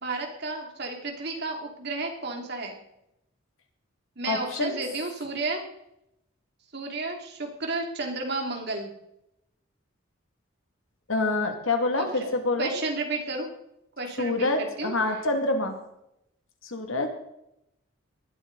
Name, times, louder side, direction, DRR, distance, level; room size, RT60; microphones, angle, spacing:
voice 1, 0.0-2.8 4.2-5.6 6.7-8.9 11.9-12.3 12.6-13.5 14.0-15.1, right 3 dB, 50° right, 2 dB, 2.8 m, -32 dB
voice 2, 4.3-4.8 11.1-12.7 14.2-15.7 16.6-17.1, left 2 dB, 75° left, 5 dB, 2.3 m, -26 dB
19.0 x 12.0 x 4.0 m, 0.81 s
head